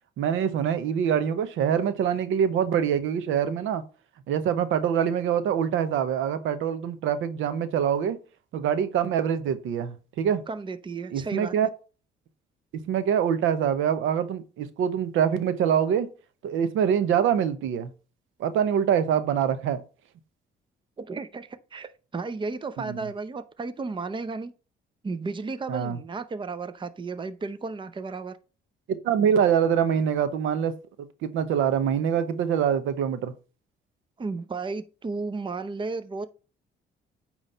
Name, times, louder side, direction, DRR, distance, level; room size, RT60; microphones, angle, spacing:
voice 1, 0.2-3.8 4.3-8.2 8.5-10.4 11.1-11.7 12.7-16.1 16.4-17.9 18.4-19.8 22.8-23.0 25.7-26.0 29.0-33.3, right 8 dB, 85° right, 0.8 m, -25 dB
voice 2, 10.5-11.5 21.0-24.5 25.0-28.4 34.2-36.3, right 4 dB, 25° right, 0.6 m, -33 dB
8.9 x 3.1 x 5.4 m
cardioid pair, 90°, 20 cm